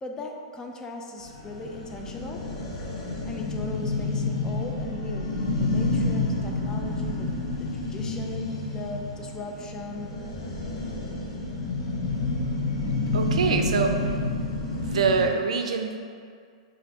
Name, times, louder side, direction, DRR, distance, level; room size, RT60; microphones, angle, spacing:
voice 1, 0.0-2.4 3.2-10.1, left 2 dB, 20° left, 1 dB, 0.4 m, -38 dB
sound 1, 1.2-15.3, left 2 dB, 60° left, 0.7 m, -29 dB
voice 2, 13.1-14.1 14.7-16.0, right 5 dB, 80° right, 4 dB, 0.4 m, -25 dB
5.0 x 2.5 x 2.8 m, 2.1 s
hypercardioid pair, 120°, 3 cm